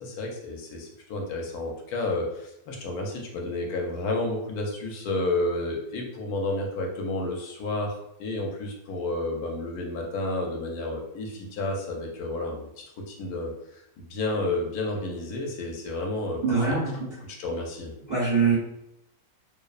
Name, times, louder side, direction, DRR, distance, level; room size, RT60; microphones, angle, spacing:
voice 1, 0.0-12.7 13.1-16.8 17.3-17.9, left 2 dB, 80° left, 1 dB, 1.1 m, -31 dB
voice 2, 16.4-17.1 18.1-18.6, right 5 dB, 45° right, -8 dB, 1.2 m, -23 dB
2.7 x 2.0 x 2.3 m, 0.80 s
omnidirectional pair, 1.6 m